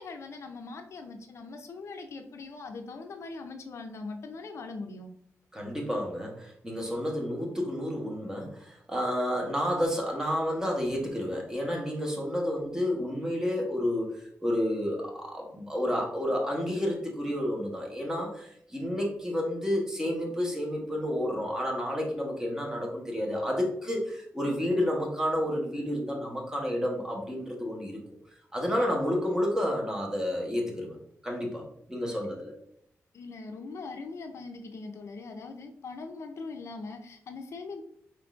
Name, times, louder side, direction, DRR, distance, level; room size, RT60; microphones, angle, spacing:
voice 1, 0.0-5.1 33.1-37.8, left 3 dB, 60° left, 5 dB, 0.4 m, -41 dB
voice 2, 5.5-28.0 28.5-31.0 31.2-31.6 31.9-32.5, equal, 10° right, 0 dB, 1.0 m, -30 dB
4.4 x 3.6 x 2.4 m, 0.69 s
wide cardioid pair, 130°, 5 cm